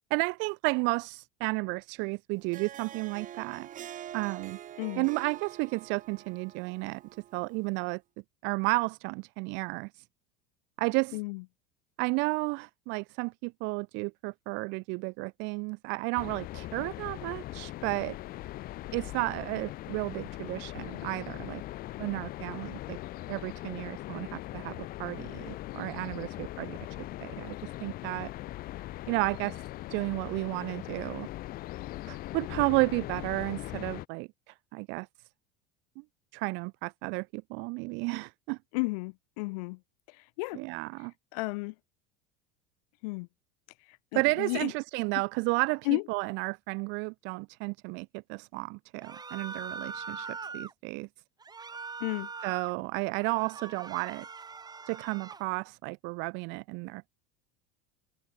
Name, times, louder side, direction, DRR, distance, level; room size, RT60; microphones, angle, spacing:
voice 1, 0.1-3.7 4.1-4.6 5.0-7.0 7.3-8.0 8.4-10.0 10.8-11.2 12.0-18.2 18.9-21.6 22.0-23.0 23.3-26.8 27.2-27.6 27.8-28.3 29.1-29.6 29.9-31.3 32.1-35.1 36.3-38.6 40.5-41.1 44.1-51.1 52.4-54.3 54.9-57.1, right 30 dB, 65° right, 1.8 m, -32 dB
Harp, 2.3-7.8, right 11 dB, 40° right, 3.7 m, -45 dB
sound 1, 16.2-34.1, left 16 dB, 50° left, 0.9 m, -40 dB
voice 2, 38.7-39.8 40.4-40.6 41.3-41.7 43.0-43.3 44.1-44.7 45.9-46.0 52.0-52.3, left 27 dB, 75° left, 1.2 m, -32 dB
sound 2, 49.0-50.7 51.4-52.7 53.1-55.5, right 5 dB, 20° right, 3.6 m, -42 dB
supercardioid pair, 110°, 20 cm